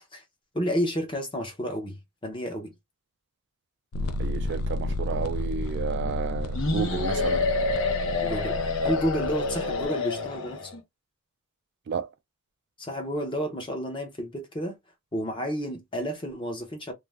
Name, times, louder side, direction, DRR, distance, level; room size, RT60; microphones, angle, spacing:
voice 1, 0.5-2.7 8.2-8.6 8.8-10.8 12.8-14.8 15.1-16.9, equal, 20° left, 0.7 m, -31 dB
sound 1, 3.9-9.8, left 2 dB, 85° left, 0.4 m, -32 dB
voice 2, 4.2-7.5 11.9-12.1, right 6 dB, 50° right, 0.3 m, -32 dB
sound 2, 6.5-10.7, left 3 dB, 60° left, 0.8 m, -28 dB
2.5 x 2.1 x 3.3 m
head